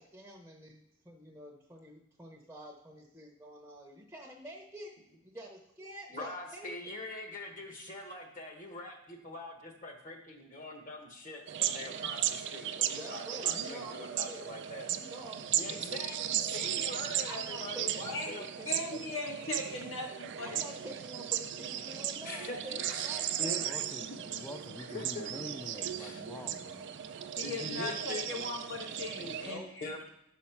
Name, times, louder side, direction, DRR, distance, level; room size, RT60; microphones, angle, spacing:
voice 1, 0.0-4.9 5.2-6.7 12.0-12.1 12.9-14.5 14.9-15.8 17.2-18.9 20.4-23.7 29.4-29.7, right 1 dB, 10° right, -1 dB, 0.8 m, -48 dB
voice 2, 6.1-14.9 15.5-18.4 22.2-23.1 23.4-23.6 24.2-24.4 24.8-25.4 25.7-26.2 27.3-28.3 29.8-30.0, left 2 dB, 40° left, 2 dB, 1.3 m, -43 dB
sound 1, 11.5-29.5, right 10 dB, 60° right, 0.4 m, -36 dB
voice 3, 18.7-20.5 24.1-24.4 27.4-29.7, left 2 dB, 70° left, 0 dB, 1.5 m, -39 dB
voice 4, 23.6-27.3, left 1 dB, 10° left, 7 dB, 0.4 m, -47 dB
7.2 x 4.2 x 5.8 m, 0.79 s
head